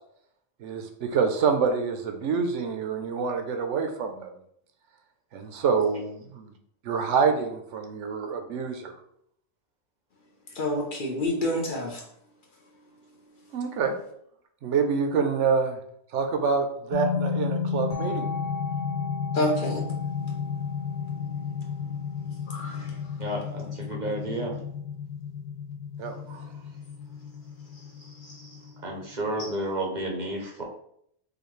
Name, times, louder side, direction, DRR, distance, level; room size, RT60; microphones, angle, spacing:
voice 1, 0.6-4.3 5.3-6.5 6.8-8.9 13.5-13.9 14.6-15.8 16.1-18.3 26.0-26.4, right 5 dB, 80° right, 5 dB, 0.9 m, -26 dB
voice 2, 10.5-12.0 19.3-19.8 22.5-23.0 28.2-28.3, left 1 dB, 50° left, 0 dB, 0.8 m, -28 dB
sound 1, 16.9-29.5, left 6 dB, 75° left, 1.0 m, -32 dB
voice 3, 23.2-24.5 28.4-28.6 28.8-30.6, right 1 dB, 45° right, 0 dB, 0.7 m, -31 dB
5.0 x 2.3 x 3.1 m, 0.71 s
omnidirectional pair, 1.2 m